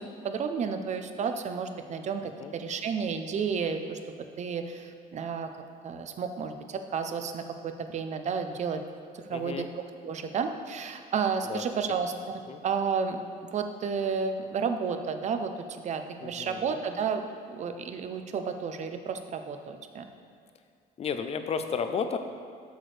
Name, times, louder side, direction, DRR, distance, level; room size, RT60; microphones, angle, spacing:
voice 1, 0.2-4.0 4.4-5.5 5.8-8.8 9.1-9.6 10.0-12.1 12.6-13.2 13.5-20.1, right 6 dB, 45° right, 7 dB, 0.6 m, -31 dB
voice 2, 2.2-2.5 9.3-9.7 11.4-11.6 12.5-12.6 16.2-16.8 21.0-22.2, left 6 dB, 40° left, 8 dB, 0.5 m, -33 dB
8.0 x 6.1 x 3.3 m, 2.3 s
cardioid pair, 110°, 17 cm